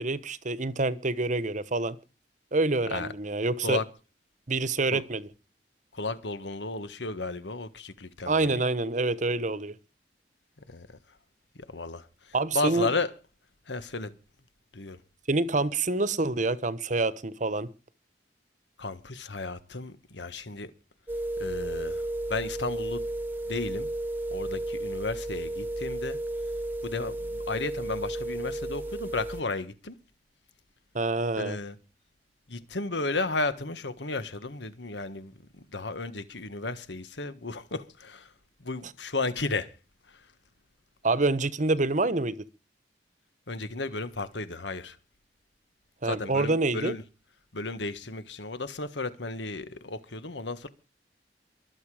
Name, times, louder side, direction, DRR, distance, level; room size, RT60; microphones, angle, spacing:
voice 1, 0.0-2.0 2.5-3.8 4.5-5.3 8.3-9.7 12.3-12.9 15.3-17.7 30.9-31.6 41.0-42.4 46.0-46.9, right 2 dB, 45° right, 1.1 m, -27 dB
voice 2, 5.9-8.6 10.7-10.9 11.7-12.1 12.5-13.1 13.7-14.1 14.7-15.0 18.8-20.7 21.4-22.0 22.3-23.0 23.5-23.9 24.3-26.2 26.8-29.9 31.4-31.7 32.5-35.3 35.7-38.3 38.6-39.7 43.5-45.0 46.0-47.0 47.5-50.7, left 3 dB, 80° left, 1.5 m, -33 dB
sound 1, 21.1-29.4, right 1 dB, 10° right, 1.2 m, -33 dB
23.5 x 8.2 x 5.0 m
head